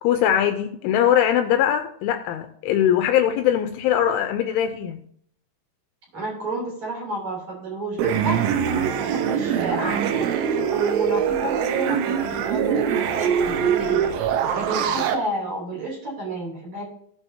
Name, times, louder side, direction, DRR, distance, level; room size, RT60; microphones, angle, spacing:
voice 1, 0.0-5.0, left 10 dB, 80° left, 2.9 m, -21 dB
voice 2, 6.1-10.3 10.7-14.0 14.5-16.8, right 2 dB, 40° right, 3.9 m, -30 dB
sound 1, 8.0-15.2, right 8 dB, 85° right, 3.6 m, -23 dB
18.5 x 6.5 x 2.7 m
omnidirectional pair, 5.9 m